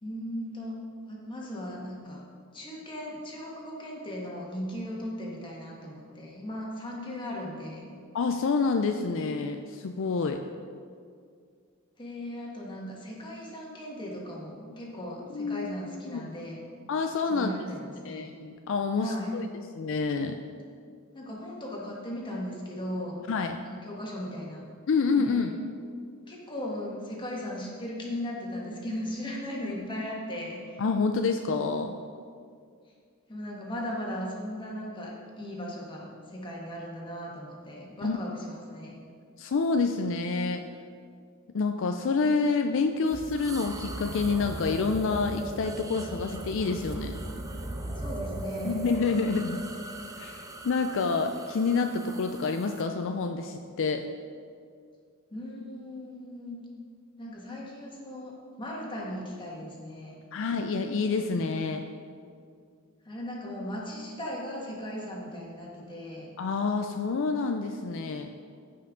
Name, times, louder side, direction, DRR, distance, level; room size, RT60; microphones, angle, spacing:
voice 1, 0.0-0.8 1.0-2.2 2.5-8.0 12.0-16.7 17.3-18.3 19.0-19.3 21.1-23.2 23.6-24.6 25.1-25.5 26.3-30.8 33.3-39.0 48.0-48.8 55.3-56.6 57.2-60.2 63.0-66.3, left 1 dB, 20° left, -3 dB, 1.7 m, -37 dB
voice 2, 8.1-10.4 15.3-16.3 16.9-17.5 18.0-19.5 19.7-20.4 23.3-23.6 24.9-25.5 30.8-32.0 38.0-38.2 39.4-40.6 41.5-47.2 48.6-49.6 50.2-54.1 60.3-61.9 66.4-68.3, left 4 dB, 60° left, 6 dB, 0.4 m, -28 dB
sound 1, 43.1-52.9, right 1 dB, 15° right, 0.5 m, -38 dB
14.5 x 5.6 x 3.8 m, 2.2 s
head